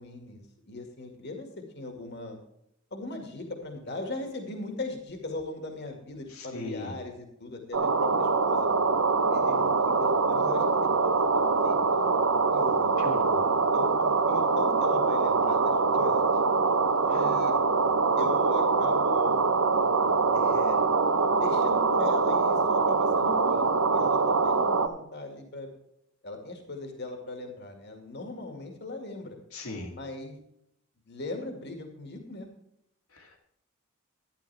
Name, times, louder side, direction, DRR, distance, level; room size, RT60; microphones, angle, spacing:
voice 1, 0.0-1.5 1.7-2.4 2.9-8.7 9.3-12.0 12.5-13.0 13.7-16.2 17.1-17.6 18.2-19.4 20.3-20.8 21.4-23.7 23.9-25.7 26.2-29.4 29.9-30.4 31.1-32.5, left 2 dB, 50° left, 3 dB, 2.1 m, -39 dB
voice 2, 6.3-7.0 13.0-13.4 17.1-17.4 29.5-29.9 33.1-33.4, left 2 dB, 85° left, 2 dB, 2.5 m, -39 dB
sound 1, 7.7-24.9, right 4 dB, 75° right, 1.0 m, -24 dB
12.0 x 10.5 x 3.4 m, 0.79 s
head